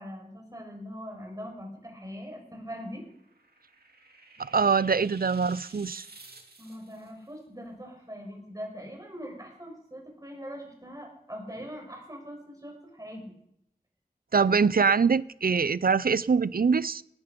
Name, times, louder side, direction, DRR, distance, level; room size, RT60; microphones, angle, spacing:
voice 1, 0.0-3.0 6.6-13.3, equal, 20° right, 5.8 m, -42 dB
sound 1, 2.9-7.1, right 3 dB, 90° right, 2.3 m, -52 dB
voice 2, 4.4-6.0 14.3-17.0, right 5 dB, 70° right, 0.5 m, -24 dB
18.5 x 12.5 x 5.2 m
wide cardioid pair, 60°, 16 cm